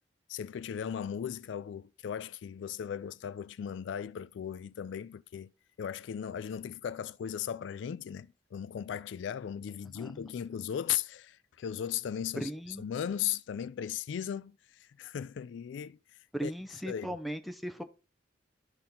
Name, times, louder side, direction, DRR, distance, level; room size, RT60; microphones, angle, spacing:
voice 1, 0.3-5.5 5.8-16.0 16.4-16.5 16.9-17.2, left 9 dB, 75° left, 0.3 m, -37 dB
voice 2, 9.9-10.3 12.4-12.9 16.3-17.8, right 1 dB, ahead, 0.6 m, -38 dB
11.5 x 4.3 x 3.7 m
head